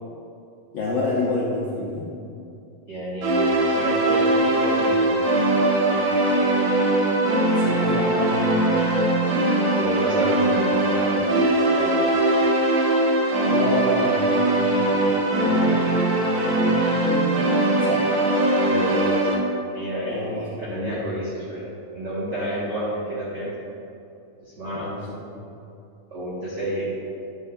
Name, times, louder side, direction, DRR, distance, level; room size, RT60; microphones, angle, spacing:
voice 1, 0.7-2.1 7.6-8.6 13.4-14.5 14.9-15.2 15.4-16.1 16.5-17.5 17.8-18.1 20.1-21.2 24.7-25.4, left 2 dB, 75° left, -6 dB, 1.4 m, -29 dB
voice 2, 2.9-5.3 5.8-6.7 9.7-12.0 18.6-19.2 19.7-21.6 21.9-23.5 24.4-24.9 26.1-26.8, right 1 dB, 40° right, -10 dB, 1.6 m, -30 dB
sound 1, 3.2-19.3, right 1 dB, 60° right, 2.5 m, -21 dB
12.0 x 7.4 x 2.6 m, 2.6 s
omnidirectional pair, 4.2 m